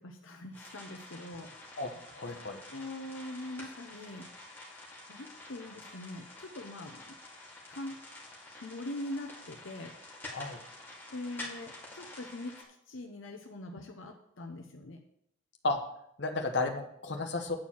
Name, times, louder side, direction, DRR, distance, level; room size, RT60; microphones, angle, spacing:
voice 1, 0.0-1.5 2.7-4.2 5.1-7.2 7.7-7.9 8.6-9.9 11.1-12.5 12.9-15.0, left 1 dB, 80° left, 2 dB, 0.9 m, -42 dB
sound 1, 0.5-12.6, left 2 dB, 10° left, 2.2 m, -48 dB
voice 2, 2.2-2.6 10.3-10.6 15.6-15.8 16.2-17.6, left 3 dB, 65° left, 4 dB, 1.2 m, -33 dB
9.0 x 4.5 x 7.4 m, 0.73 s
head